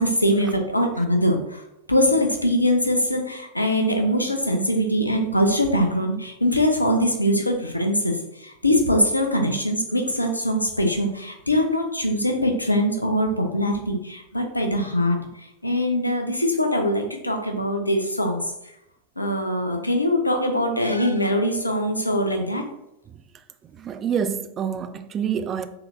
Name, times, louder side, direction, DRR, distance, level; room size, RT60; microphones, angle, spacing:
voice 1, 0.0-1.6 1.9-18.5 19.2-22.7, equal, 85° left, 0.6 m, -22 dB
voice 2, 23.6-25.7, right 7 dB, 30° right, 0.3 m, -27 dB
4.2 x 3.8 x 2.7 m
figure-of-eight pair, 90°, 0 cm